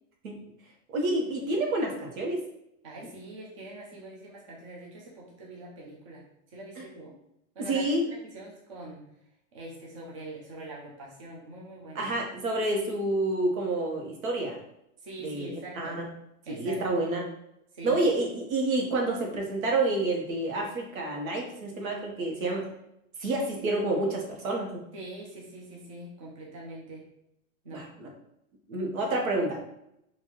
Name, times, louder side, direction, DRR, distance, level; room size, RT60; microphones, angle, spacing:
voice 1, 0.9-2.4 6.8-6.9 7.6-8.0 11.9-14.5 15.2-16.0 16.5-17.3 17.8-22.7 23.2-24.8 27.7-28.1 28.7-29.6, right 2 dB, 80° right, 0 dB, 1.2 m, -29 dB
voice 2, 2.8-6.2 6.5-7.1 7.6-9.0 9.5-12.1 15.0-16.0 16.5-16.8 17.7-18.0 24.9-27.1 27.6-27.9, right 2 dB, 25° right, -4 dB, 0.4 m, -43 dB
3.9 x 2.6 x 3.0 m, 0.80 s
supercardioid pair, 175°, 41 cm